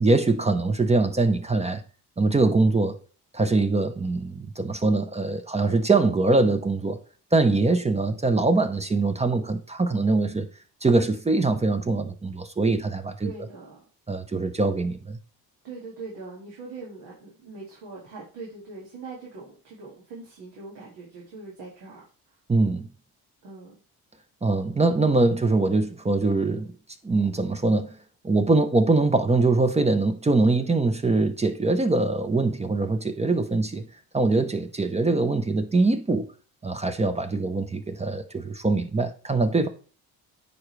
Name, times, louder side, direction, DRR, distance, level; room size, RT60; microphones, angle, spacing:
voice 1, 0.0-1.8 2.2-3.0 3.3-7.0 7.3-10.5 10.8-13.3 14.1-15.2 22.5-22.9 24.4-26.7 27.0-27.9 28.2-33.9 34.1-36.3 36.6-39.7, right 3 dB, 15° right, 0.6 m, -23 dB
voice 2, 13.2-13.9 15.6-22.0 23.4-23.7 30.6-30.9 37.4-37.6, right 3 dB, 80° right, 2.0 m, -42 dB
9.6 x 3.8 x 3.2 m
cardioid pair, 80°, 39 cm